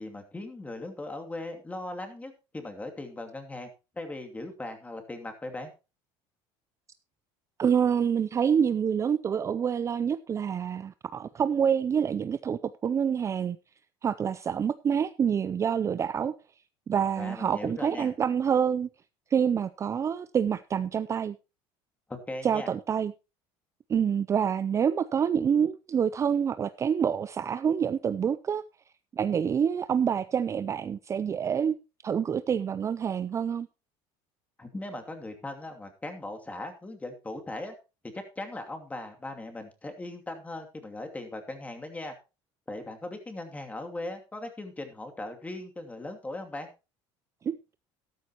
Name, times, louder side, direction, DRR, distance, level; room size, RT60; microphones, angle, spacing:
voice 1, 0.0-3.7 4.0-5.7 17.2-18.1 22.1-22.7 34.6-37.7 38.1-42.1 42.7-46.7, left 2 dB, 15° left, 2.6 m, -39 dB
voice 2, 7.6-13.6 14.0-16.3 16.9-18.9 19.3-21.4 22.4-23.1 23.9-28.6 29.1-31.8 32.0-33.7 47.4-47.6, right 7 dB, 25° right, 0.5 m, -27 dB
13.0 x 12.5 x 3.0 m
cardioid pair, 125°, 11 cm